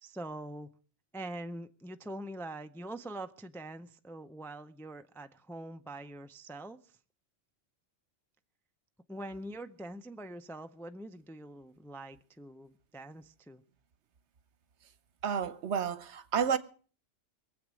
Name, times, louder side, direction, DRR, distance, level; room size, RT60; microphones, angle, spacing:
voice 1, 0.0-0.7 1.1-7.0 9.1-13.6, right 1 dB, 5° left, 0.4 m, -44 dB
voice 2, 15.2-16.6, right 7 dB, 70° right, 1.1 m, -30 dB
22.5 x 7.9 x 6.2 m
omnidirectional pair, 1.2 m